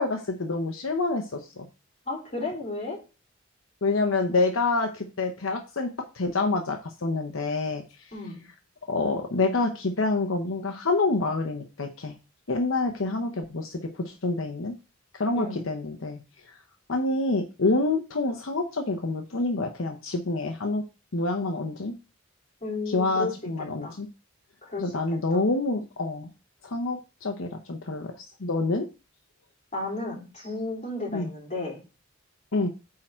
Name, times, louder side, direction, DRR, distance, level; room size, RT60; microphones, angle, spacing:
voice 1, 0.0-1.7 3.8-5.9 6.1-7.8 8.9-12.2 12.5-14.7 15.1-16.2 16.5-16.6 16.9-20.8 21.1-21.9 22.9-24.1 24.8-26.3 26.6-28.8 31.1-31.3 32.5-32.7, left 3 dB, 75° left, 4 dB, 0.9 m, -27 dB
voice 2, 2.1-3.0 8.1-8.4 15.4-15.7 22.6-23.3 23.6-23.9 24.6-25.4 29.7-31.8, left 2 dB, 35° left, -3 dB, 3.7 m, -33 dB
8.8 x 3.8 x 4.4 m, 0.32 s
head